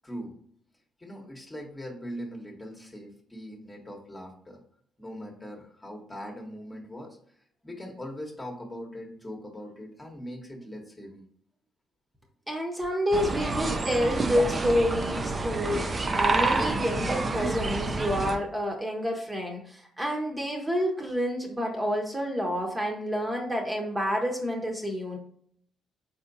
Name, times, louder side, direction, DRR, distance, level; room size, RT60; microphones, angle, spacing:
voice 1, 0.0-0.4 1.0-4.6 5.0-7.2 7.6-11.2, equal, 20° left, 0 dB, 1.2 m, -41 dB
voice 2, 12.5-25.2, equal, 15° right, 0 dB, 1.0 m, -29 dB
sound 1, 13.1-18.4, right 3 dB, 30° right, 0.6 m, -28 dB
4.2 x 3.7 x 2.7 m, 0.63 s
hypercardioid pair, 45°, 0 cm